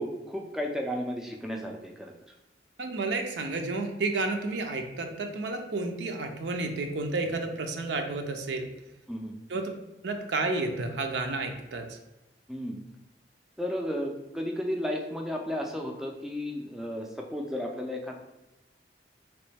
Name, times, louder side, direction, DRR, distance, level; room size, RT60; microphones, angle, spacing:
voice 1, 0.0-2.1 9.1-9.3 12.5-12.8 13.6-18.2, equal, ahead, 1 dB, 0.3 m, -33 dB
voice 2, 2.8-8.7 9.5-9.7 10.0-12.0, right 3 dB, 80° right, 4 dB, 0.5 m, -31 dB
3.0 x 3.0 x 3.3 m, 0.99 s
head